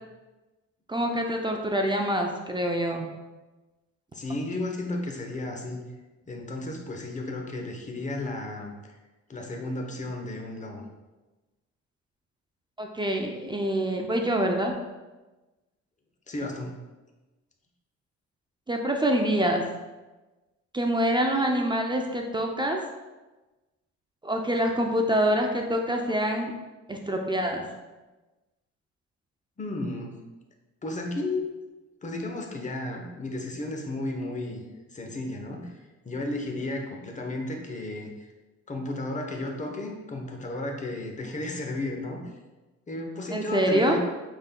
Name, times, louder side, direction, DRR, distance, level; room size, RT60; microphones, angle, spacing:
voice 1, 0.9-3.1 12.8-14.7 18.7-19.6 20.7-22.8 24.2-26.5 26.9-27.6 43.3-44.0, right 1 dB, 15° right, 2 dB, 0.4 m, -25 dB
voice 2, 4.1-5.8 6.3-8.9 9.3-10.8 16.3-16.7 29.6-30.1 30.8-31.5 32.0-34.6 34.9-35.7 36.0-38.3 38.7-42.2 42.9-44.0, left 2 dB, 25° left, 2 dB, 0.8 m, -33 dB
5.3 x 3.7 x 2.2 m, 1.2 s
cardioid pair, 90°, 30 cm